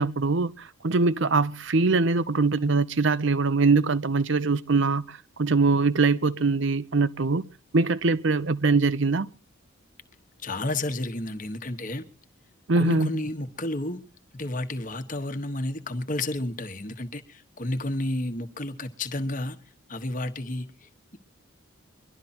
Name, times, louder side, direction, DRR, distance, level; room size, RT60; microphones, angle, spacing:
voice 1, 0.0-7.4 7.7-9.3 12.7-13.1, right 3 dB, 60° right, 0.8 m, -23 dB
voice 2, 10.4-12.0 12.8-14.0 14.3-19.6 19.9-21.2, left 1 dB, 40° left, 1.3 m, -31 dB
23.0 x 12.0 x 4.4 m
head